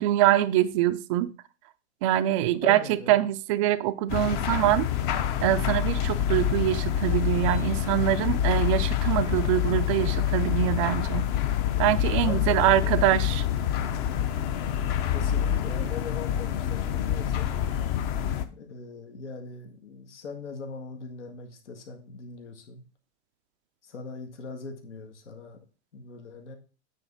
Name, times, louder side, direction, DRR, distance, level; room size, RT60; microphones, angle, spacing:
voice 1, 0.0-1.3 2.0-4.9 5.4-11.2 11.8-13.4, right 13 dB, 30° right, 0.4 m, -24 dB
voice 2, 2.6-3.2 12.2-13.1 15.1-17.7 18.5-22.8 23.8-25.6 25.9-26.6, left 4 dB, 85° left, 1.8 m, -40 dB
sound 1, 4.1-18.5, left 10 dB, 35° left, 0.7 m, -27 dB
9.1 x 3.6 x 5.5 m
hypercardioid pair, 135°, 35 cm